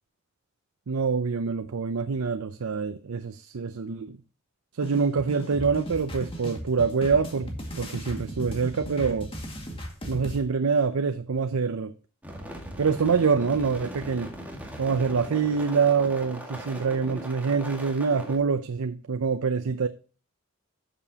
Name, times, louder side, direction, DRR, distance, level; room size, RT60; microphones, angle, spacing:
voice 1, 0.9-4.2 4.8-9.3 10.1-11.9 12.8-14.3 14.8-19.9, right 5 dB, 85° right, 0.6 m, -25 dB
sound 1, 4.8-10.4, equal, 25° left, 2.0 m, -37 dB
sound 2, 12.2-18.4, right 1 dB, 10° right, 1.8 m, -39 dB
12.5 x 7.0 x 2.9 m
head